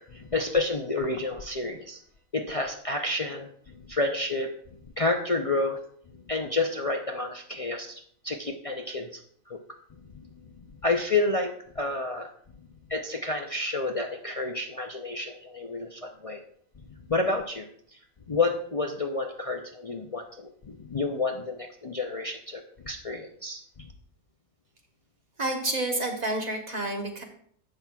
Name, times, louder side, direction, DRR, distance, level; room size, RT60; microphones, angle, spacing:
voice 1, 0.0-2.0 2.3-3.5 3.7-4.5 5.0-5.8 6.1-9.2 9.5-9.6 10.1-10.3 10.8-12.3 12.9-16.4 17.1-17.6 18.3-23.6, left 3 dB, 50° left, 3 dB, 0.4 m, -30 dB
voice 2, 25.4-27.2, right 2 dB, 35° right, 2 dB, 1.1 m, -29 dB
15.5 x 5.9 x 2.3 m, 0.62 s
omnidirectional pair, 1.4 m